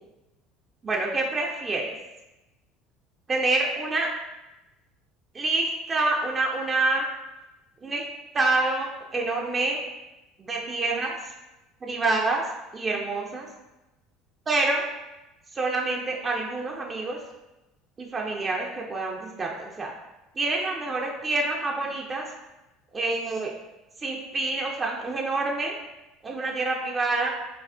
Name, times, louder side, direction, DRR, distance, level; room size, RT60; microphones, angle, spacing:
voice 1, 0.8-1.9 3.3-4.1 5.3-7.1 7.8-8.1 8.3-9.8 10.4-11.3 11.8-12.4 12.7-13.5 14.5-14.8 15.5-17.2 18.0-19.9 20.4-22.3 22.9-23.5 24.0-25.8 26.2-27.3, right 2 dB, 25° right, -1 dB, 0.4 m, -27 dB
4.8 x 2.3 x 2.2 m, 1.0 s
figure-of-eight pair, 65°, 0 cm